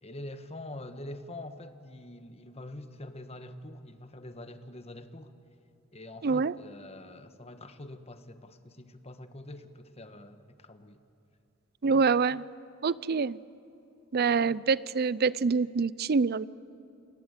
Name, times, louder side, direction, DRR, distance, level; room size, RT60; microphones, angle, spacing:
voice 1, 0.0-5.3 5.9-11.0, left 1 dB, 30° left, 9 dB, 1.3 m, -45 dB
voice 2, 6.2-6.5 11.8-12.5 12.8-13.4 14.1-16.5, right 5 dB, 50° right, 20 dB, 0.5 m, -26 dB
29.0 x 21.0 x 8.1 m, 2.8 s
head